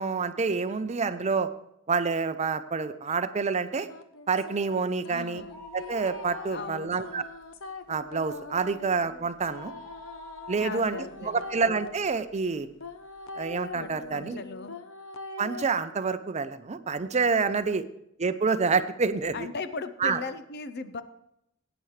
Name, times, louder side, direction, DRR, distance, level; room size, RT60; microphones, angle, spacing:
voice 1, 0.0-1.5 1.9-3.9 4.3-5.4 5.7-7.2 7.9-9.7 10.5-11.0 11.2-12.7 13.4-14.4 15.4-17.8 18.2-19.5 20.0-20.2, right 4 dB, 35° right, 11 dB, 0.6 m, -27 dB
sound 1, 3.7-11.9 12.8-15.6, left 3 dB, 75° left, 0.9 m, -42 dB
voice 2, 5.1-5.6 6.5-7.3 10.6-11.5 13.8-14.8 17.7-17.8 19.3-21.0, left 4 dB, 55° left, 12 dB, 0.7 m, -38 dB
sound 2, 5.5-7.0 7.3-7.4 7.9-12.3 12.8-12.9 13.7-13.8 14.0-14.1, left 2 dB, 15° left, 3.9 m, -47 dB
17.5 x 9.1 x 3.3 m, 0.79 s
head